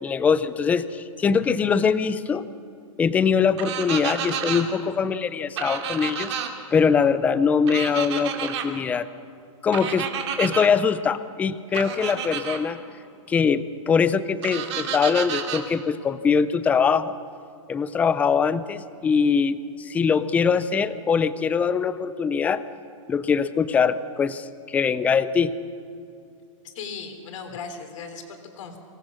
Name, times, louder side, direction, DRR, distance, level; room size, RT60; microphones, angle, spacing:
voice 1, 0.0-2.4 3.0-6.3 6.7-9.1 9.6-10.1 10.4-12.8 13.3-17.2 17.7-22.6 23.1-25.5, left 6 dB, 10° left, 15 dB, 0.4 m, -22 dB
sound 1, 3.6-4.6 5.6-6.5 7.7-8.7 9.7-10.7 11.7-12.6 14.4-15.6, right 8 dB, 55° right, 2.3 m, -30 dB
voice 2, 26.6-28.8, left 5 dB, 65° left, 5 dB, 3.4 m, -37 dB
25.0 x 18.5 x 6.3 m, 2.5 s
supercardioid pair, 160°, 17 cm